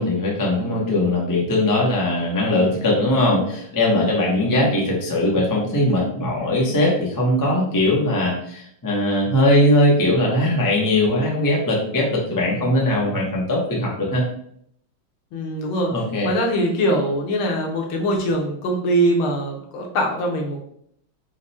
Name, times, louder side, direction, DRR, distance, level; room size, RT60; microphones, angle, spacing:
voice 1, 0.0-14.2 15.9-16.3, left 1 dB, 30° left, -3 dB, 0.3 m, -20 dB
voice 2, 15.3-15.9 16.2-20.6, right 1 dB, 75° left, 1 dB, 1.7 m, -22 dB
4.8 x 2.2 x 4.2 m, 0.68 s
omnidirectional pair, 2.4 m